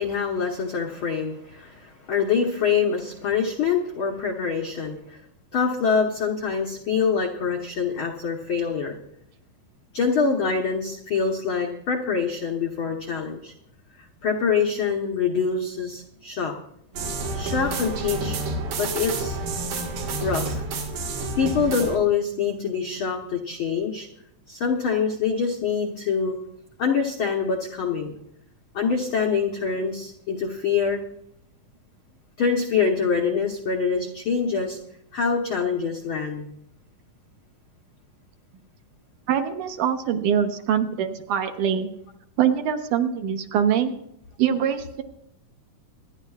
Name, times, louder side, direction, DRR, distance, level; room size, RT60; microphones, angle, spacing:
voice 1, 0.0-5.2 5.5-9.0 9.9-13.5 14.2-16.5 17.3-18.4 18.8-19.4 20.2-20.6 21.4-24.1 24.5-26.4 26.8-28.1 28.7-31.0 32.4-34.8 35.1-36.5, left 5 dB, 80° left, 1 dB, 1.1 m, -25 dB
sound 1, 16.9-22.0, right 2 dB, 90° right, 3.5 m, -29 dB
voice 2, 39.3-41.9 42.4-43.9 44.4-45.0, right 8 dB, 75° right, 6 dB, 2.2 m, -23 dB
25.0 x 10.5 x 2.4 m, 0.76 s
omnidirectional pair, 4.0 m